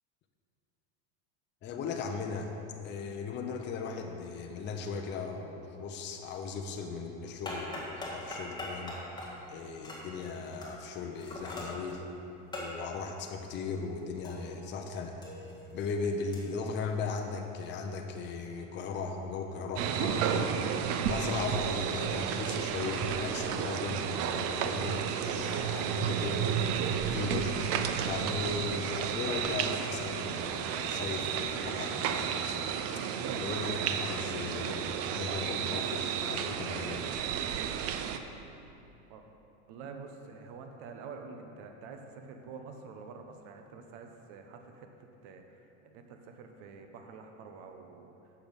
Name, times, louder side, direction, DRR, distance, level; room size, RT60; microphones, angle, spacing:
voice 1, 1.6-2.5 2.8-9.0 9.5-12.0 12.6-15.2 15.7-20.6 21.1-26.7 27.1-27.6 28.0-32.7 33.3-37.1, left 4 dB, 30° left, 3 dB, 0.7 m, -37 dB
sound 1, 7.3-14.8 15.1-17.5, left 1 dB, 10° left, 1.7 m, -43 dB
sound 2, 19.8-38.2, right 8 dB, 40° right, 0.5 m, -32 dB
voice 2, 39.7-48.1, right 5 dB, 60° right, 4 dB, 1.0 m, -47 dB
8.1 x 7.0 x 5.2 m, 2.9 s
supercardioid pair, 135°, 36 cm